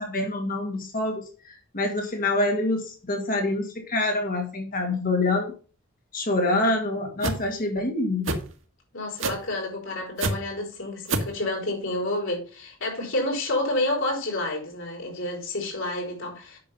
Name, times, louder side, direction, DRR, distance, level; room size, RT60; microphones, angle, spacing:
voice 1, 0.0-5.5 6.1-8.3, left 2 dB, 45° left, 2.0 m, -26 dB
sound 1, 7.2-7.4 8.2-8.4 9.2-9.5 10.2-10.3 11.1-11.3, right 3 dB, 75° right, 1.6 m, -25 dB
voice 2, 8.9-16.6, left 1 dB, 75° left, 4.6 m, -29 dB
8.6 x 6.3 x 5.6 m
head